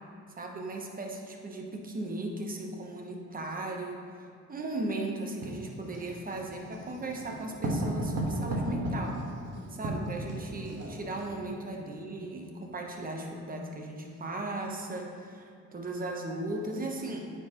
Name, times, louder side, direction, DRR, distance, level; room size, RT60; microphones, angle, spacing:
voice 1, 0.3-9.2 9.7-17.3, right 2 dB, 30° right, 1 dB, 1.0 m, -37 dB
Writing, 5.4-11.4, right 1 dB, 60° right, 1.4 m, -34 dB
9.2 x 4.6 x 3.0 m, 2.5 s
cardioid pair, 90°, 30 cm